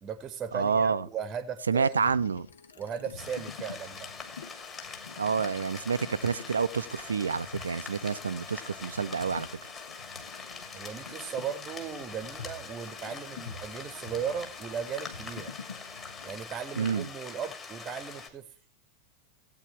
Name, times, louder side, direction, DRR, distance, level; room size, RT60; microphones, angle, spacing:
voice 1, 0.0-2.0 2.8-4.1 10.7-15.5 16.2-18.5, right 7 dB, 25° right, 1.0 m, -37 dB
voice 2, 0.5-1.1 1.7-2.5 5.2-9.5 16.8-17.1, right 5 dB, 75° right, 0.5 m, -28 dB
sound 1, 1.8-16.4, left 5 dB, 65° left, 1.0 m, -48 dB
sound 2, 3.2-18.3, left 5 dB, 25° left, 2.5 m, -43 dB
16.5 x 9.0 x 3.2 m
figure-of-eight pair, 90°, 0 cm